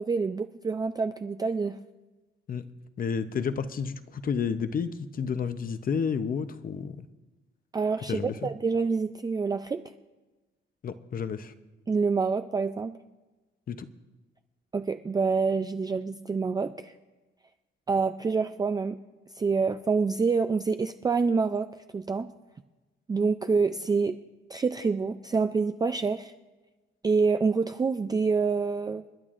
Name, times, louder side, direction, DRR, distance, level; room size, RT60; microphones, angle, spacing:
voice 1, 0.0-1.8 7.7-9.8 11.9-13.0 14.7-16.9 17.9-19.0 19.4-21.7 21.9-22.3 23.1-24.2 24.5-26.3 27.0-29.0, right 4 dB, 20° right, 8 dB, 0.3 m, -27 dB
voice 2, 3.0-7.1 8.1-8.3 10.8-11.5 13.7-13.9, left 6 dB, 45° left, 11 dB, 0.7 m, -31 dB
29.5 x 10.5 x 2.5 m, 1.2 s
cardioid pair, 125°, 20 cm